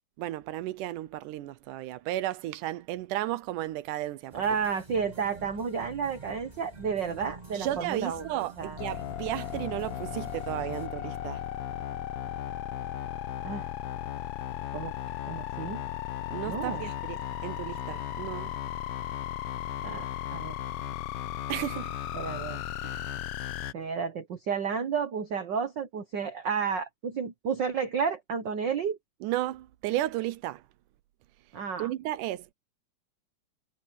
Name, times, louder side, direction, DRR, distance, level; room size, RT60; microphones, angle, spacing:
voice 1, 0.2-4.4 7.5-11.4 16.3-18.5 21.5-21.9 22.8-23.0 29.2-30.6 31.8-32.5, right 14 dB, 80° right, 2.2 m, -34 dB
sound 1, 4.3-10.9, right 3 dB, 15° right, 2.5 m, -47 dB
voice 2, 4.3-8.3 8.6-8.8 13.4-13.7 14.7-14.9 15.2-15.8 16.4-16.8 19.8-20.6 22.1-22.6 23.7-29.0 31.5-31.9, right 6 dB, 55° right, 1.2 m, -31 dB
sound 2, 8.8-23.7, left 12 dB, 75° left, 1.3 m, -36 dB
omnidirectional pair, 3.7 m